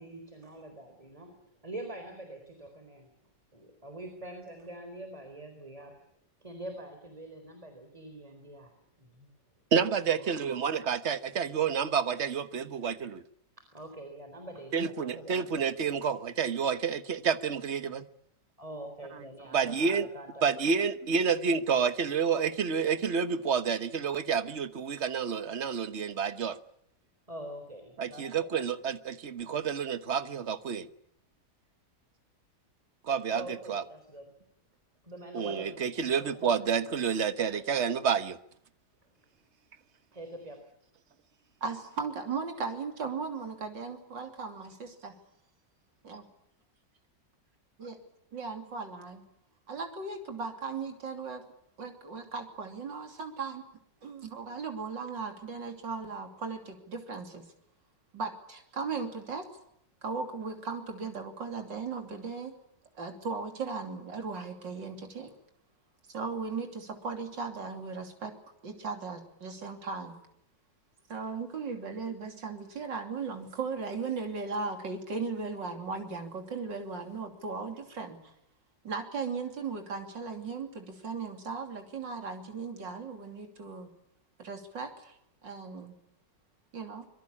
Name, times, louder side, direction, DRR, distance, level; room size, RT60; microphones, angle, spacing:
voice 1, 0.0-3.1 3.5-6.0 6.4-8.7 9.0-9.3 10.0-10.3 12.6-12.7 13.7-15.6 18.6-20.6 22.8-22.9 27.3-28.5 33.3-34.3 35.0-37.1 40.1-40.6, right 1 dB, 20° right, 4.0 m, -45 dB
voice 2, 9.7-13.2 14.7-18.0 19.5-20.1 20.4-26.6 28.0-30.9 33.0-33.8 35.3-38.4, right 6 dB, 40° right, 1.3 m, -29 dB
voice 3, 41.6-45.2 46.0-46.3 47.8-48.0 48.3-49.2 49.7-51.4 51.8-53.6 54.0-57.5 58.1-59.5 60.0-62.5 63.0-65.4 66.1-68.3 68.6-70.2 71.1-78.2 78.8-83.9 84.4-85.2 85.4-85.9 86.7-87.1, right 4 dB, 90° right, 3.7 m, -37 dB
25.0 x 22.5 x 8.6 m
omnidirectional pair, 1.9 m